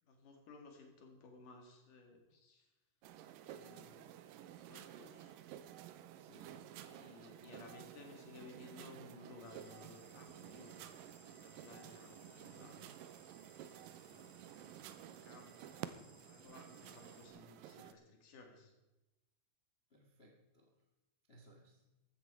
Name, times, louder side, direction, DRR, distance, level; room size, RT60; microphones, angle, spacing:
voice 1, 0.0-2.7 3.4-5.4 6.7-10.8 11.3-12.8 14.1-14.4 15.0-18.7, left 3 dB, 70° left, 3 dB, 3.8 m, -58 dB
sound 1, 3.0-17.9, right 11 dB, 90° right, 2.4 m, -53 dB
voice 2, 6.2-6.8 19.9-20.8 21.3-21.8, equal, 45° left, 2 dB, 0.7 m, -64 dB
sound 2, 9.4-17.3, right 1 dB, 15° right, 1.3 m, -65 dB
sound 3, 10.3-13.6 16.4-16.5, right 4 dB, 55° right, 3.9 m, -68 dB
15.0 x 12.5 x 4.7 m, 1.0 s
omnidirectional pair, 3.9 m